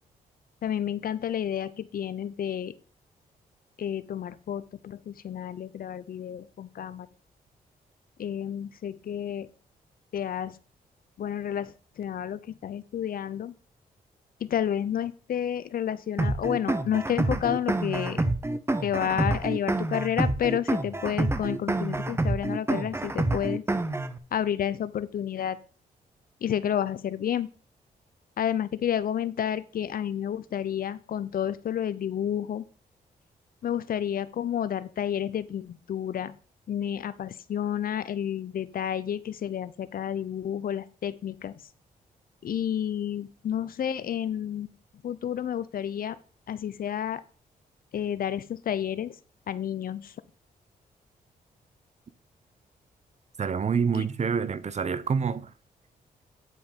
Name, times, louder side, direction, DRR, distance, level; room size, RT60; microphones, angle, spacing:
voice 1, 0.6-2.7 3.8-7.1 8.2-9.5 10.1-10.6 11.2-13.5 14.4-18.2 18.8-23.6 24.3-25.6 26.4-27.5 28.4-32.6 33.6-36.3 36.7-41.5 42.4-44.7 45.0-46.2 46.5-47.2 47.9-49.1 49.5-50.1 53.9-54.1, left 9 dB, 65° left, 0.7 m, -30 dB
sound 1, 16.2-24.2, right 2 dB, 15° right, 0.9 m, -27 dB
voice 2, 53.4-55.5, right 6 dB, 45° right, 0.8 m, -27 dB
9.7 x 5.1 x 5.2 m
cardioid pair, 70°, 16 cm